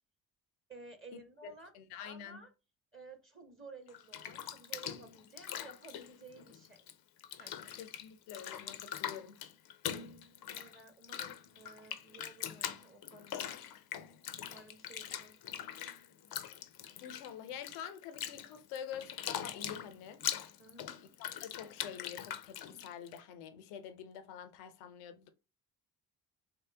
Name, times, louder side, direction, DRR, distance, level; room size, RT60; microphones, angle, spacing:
voice 1, 0.7-1.7 2.0-2.5 2.9-6.9 7.4-7.7 10.5-13.5 14.5-15.7 20.6-21.0, right 3 dB, 25° right, 1.0 m, -54 dB
voice 2, 1.7-2.4 7.7-9.4 17.0-20.2 21.2-25.3, left 8 dB, 80° left, 0.8 m, -47 dB
Bathtub (filling or washing), 3.9-6.9 7.2-23.2, left 10 dB, 50° left, 0.6 m, -42 dB
3.1 x 2.9 x 3.4 m
hypercardioid pair, 50°, 50 cm